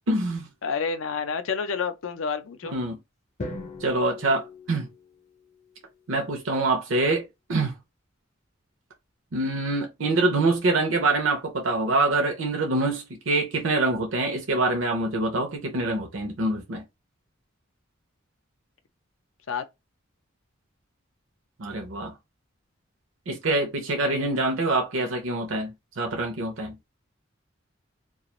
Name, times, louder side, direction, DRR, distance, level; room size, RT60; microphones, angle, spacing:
voice 1, 0.1-0.5 2.7-3.0 3.8-4.9 6.1-7.7 9.3-16.8 21.6-22.1 23.3-26.7, right 2 dB, 80° right, 0.7 m, -25 dB
voice 2, 0.6-2.8 19.5-19.6 23.9-24.4, left 5 dB, 85° left, 0.5 m, -30 dB
Drum, 3.4-5.5, left 2 dB, 40° left, 0.6 m, -39 dB
2.4 x 2.3 x 3.0 m
head